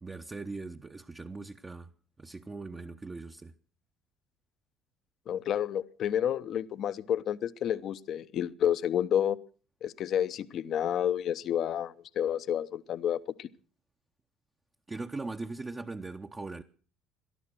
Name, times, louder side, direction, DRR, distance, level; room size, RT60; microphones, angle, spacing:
voice 1, 0.0-1.9 2.2-3.5 14.9-16.6, right 3 dB, 20° right, 0.8 m, -40 dB
voice 2, 5.3-9.4 9.8-13.5, left 10 dB, 50° left, 0.7 m, -30 dB
18.5 x 12.5 x 6.0 m
figure-of-eight pair, 60°, 0 cm